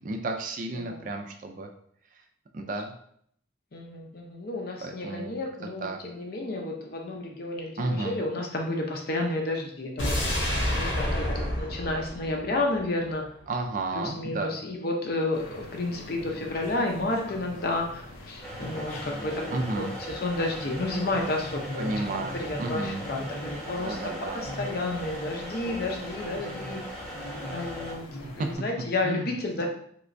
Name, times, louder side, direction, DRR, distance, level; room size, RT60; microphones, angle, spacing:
voice 1, 0.0-1.7 2.1-2.2 2.5-2.9 4.8-5.3 5.8-6.0 7.8-8.2 13.5-14.5 19.5-19.9 21.8-23.0 23.8-24.5 28.4-28.5 29.0-29.3, right 2 dB, 40° right, 4 dB, 0.4 m, -32 dB
voice 2, 0.8-1.1 3.7-10.2 10.7-13.2 13.9-19.6 20.1-21.9 22.3-24.1 24.4-26.8 27.5-28.1 28.4-29.7, left 2 dB, 50° left, 1 dB, 0.6 m, -31 dB
sound 1, 10.0-13.1 13.4-13.5, left 1 dB, 70° left, 1.0 m, -29 dB
sound 2, 15.3-28.6, left 1 dB, 90° left, 0.7 m, -43 dB
sound 3, 18.4-27.9, right 1 dB, 5° left, 0.8 m, -39 dB
3.2 x 3.0 x 2.5 m, 0.65 s
head